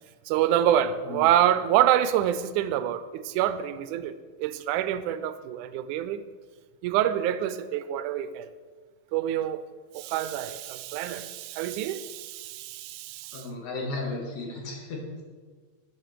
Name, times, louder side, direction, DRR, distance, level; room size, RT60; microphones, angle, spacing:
voice 1, 0.3-6.2 6.8-8.5 9.1-9.6 9.9-13.5, right 11 dB, 90° right, 2.1 m, -26 dB
voice 2, 13.3-15.2, left 2 dB, 80° left, 3.5 m, -34 dB
9.0 x 7.5 x 6.7 m
omnidirectional pair, 3.4 m